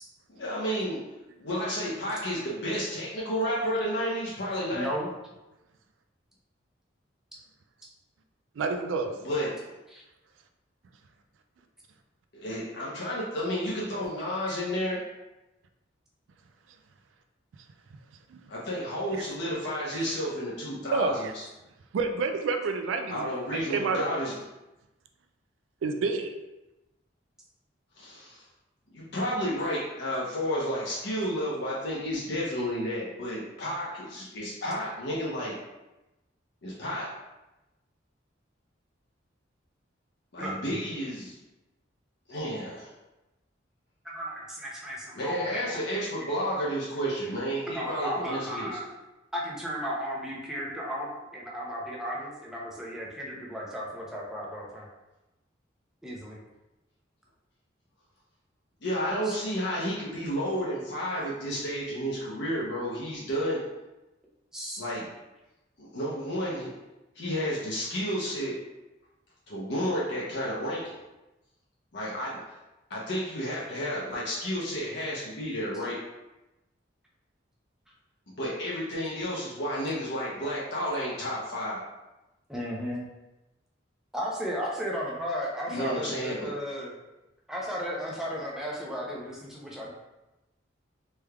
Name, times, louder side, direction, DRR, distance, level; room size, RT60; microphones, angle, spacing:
voice 1, 0.4-1.0 1.4-4.9 9.2-9.5 12.3-15.0 18.5-21.4 23.1-24.3 28.0-28.4 28.9-35.6 36.6-37.1 40.3-41.4 42.3-42.9 45.1-48.7 58.8-63.6 64.8-65.1 65.8-66.7 67.2-68.5 69.5-71.0 71.9-72.4 72.9-76.0 78.3-81.8 85.7-86.5, equal, 60° left, -6 dB, 0.7 m, -31 dB
voice 2, 4.7-5.1 9.9-10.0 40.4-40.7 44.0-45.8 46.2-46.3 47.7-48.9 49.3-54.9 56.0-56.4 59.2-59.4 64.5-64.8 82.5-83.0 84.1-87.0 87.5-89.9, equal, 5° right, -4 dB, 0.6 m, -34 dB
voice 3, 8.6-9.1 18.3-18.4 19.2-19.3 20.9-21.3 21.9-24.0 25.8-26.3, right 4 dB, 80° right, 6 dB, 0.3 m, -29 dB
3.4 x 3.2 x 2.2 m, 1.0 s
head